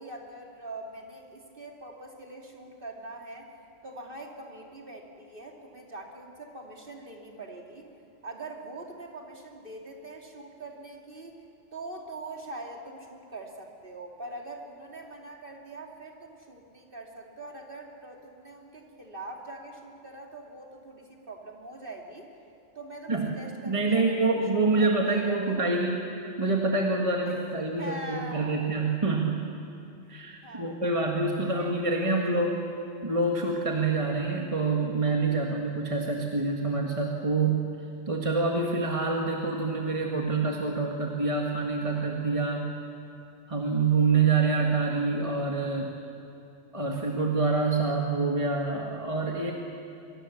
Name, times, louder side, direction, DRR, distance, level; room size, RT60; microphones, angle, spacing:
voice 1, 0.0-3.5 3.8-7.9 8.2-11.4 11.7-22.3 22.7-24.0 24.5-25.7 27.2-27.4 27.8-28.7 30.4-32.4, right 2 dB, 45° right, 0 dB, 3.0 m, -43 dB
voice 2, 23.6-26.1 26.4-29.4 30.1-32.6 33.0-37.7 38.1-42.7 43.5-45.9 46.7-49.5, right 3 dB, 25° right, 0 dB, 1.8 m, -26 dB
24.0 x 24.0 x 7.3 m, 2.7 s
omnidirectional pair, 1.3 m